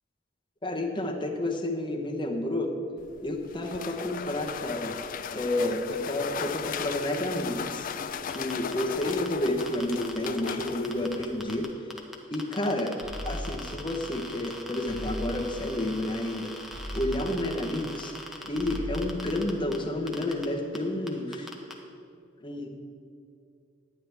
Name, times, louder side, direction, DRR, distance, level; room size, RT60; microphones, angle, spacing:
voice 1, 0.6-2.8 3.2-5.0 5.3-7.9 8.3-11.7 12.3-12.9 13.2-16.5 16.9-18.1 18.4-21.5 22.4-22.7, left 1 dB, 25° left, 2 dB, 0.9 m, -30 dB
sound 1, 3.0-11.7, left 7 dB, 45° left, 0.3 m, -37 dB
sound 2, 8.3-11.7 11.9-19.8 20.1-20.4 20.7-20.8 21.1-21.7, left 1 dB, ahead, 0.8 m, -41 dB
sound 3, 13.0-18.2 18.5-20.2, equal, 60° right, 2.2 m, -39 dB
10.5 x 9.6 x 3.4 m, 2.4 s
head